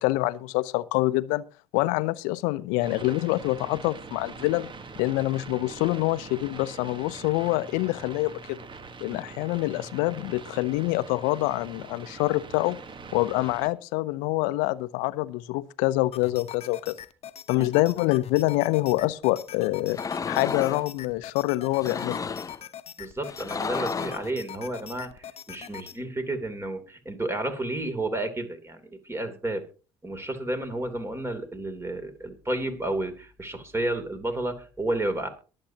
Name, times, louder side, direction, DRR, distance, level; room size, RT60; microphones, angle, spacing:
voice 1, 0.0-1.4 1.7-4.7 5.0-8.6 9.0-12.8 13.1-17.0 17.5-20.0 20.3-22.2, left 19 dB, 70° left, 0.7 m, -26 dB
sound 1, 2.8-13.7, right 4 dB, 35° right, 1.5 m, -43 dB
sound 2, 16.1-26.0, left 9 dB, 45° left, 1.0 m, -43 dB
sound 3, 19.9-20.8 21.7-22.6 23.3-24.3, left 5 dB, 25° left, 0.5 m, -32 dB
voice 2, 23.0-29.7 30.0-35.3, right 1 dB, 20° right, 3.0 m, -31 dB
22.5 x 7.7 x 2.9 m
hypercardioid pair, 60°, 14 cm